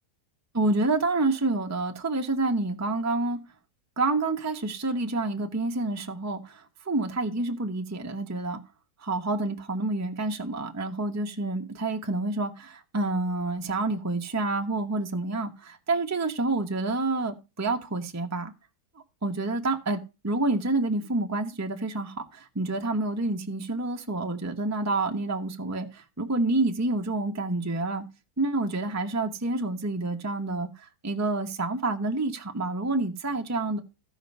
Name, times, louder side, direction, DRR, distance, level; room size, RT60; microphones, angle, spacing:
voice 1, 0.5-3.4 4.0-8.6 9.0-18.5 19.2-28.0 28.4-33.8, right 2 dB, 15° right, 0.8 m, -28 dB
15.0 x 5.2 x 5.4 m
omnidirectional pair, 1.7 m